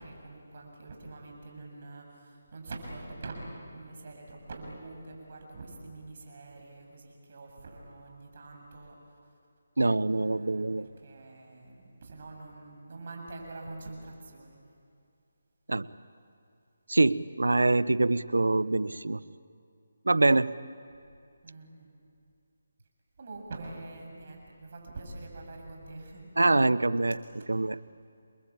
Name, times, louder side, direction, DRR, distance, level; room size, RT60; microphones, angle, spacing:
voice 1, 0.0-3.3 3.7-8.9 10.1-14.6 21.4-21.9 23.2-26.3, right 2 dB, 50° right, 1 dB, 7.4 m, -45 dB
voice 2, 9.8-10.9 15.7-15.9 16.9-19.2 20.1-20.6 26.4-27.2 27.5-27.8, right 2 dB, 90° right, 18 dB, 0.8 m, -24 dB
29.5 x 22.0 x 8.7 m, 2.4 s
figure-of-eight pair, 160°, 0 cm